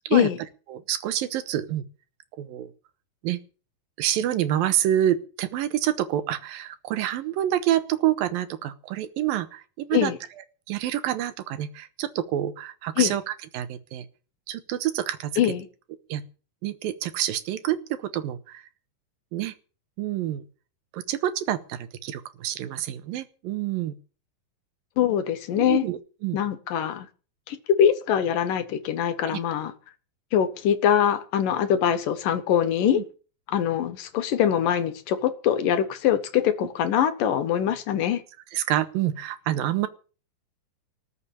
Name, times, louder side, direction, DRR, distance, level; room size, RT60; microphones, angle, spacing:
voice 1, 0.7-1.9 2.4-2.7 3.2-3.4 4.0-10.1 10.7-14.1 14.5-15.3 16.1-16.2 16.6-18.6 19.3-19.5 20.0-20.5 20.9-24.0 25.6-26.4 29.3-29.4 32.9-33.0 38.5-39.9, right 12 dB, 80° right, 13 dB, 2.8 m, -27 dB
voice 2, 15.4-15.7 25.0-25.8 26.3-27.1 27.5-29.7 30.3-33.0 33.5-38.2, left 9 dB, 70° left, 11 dB, 2.8 m, -23 dB
19.0 x 7.1 x 8.5 m, 0.38 s
omnidirectional pair, 4.2 m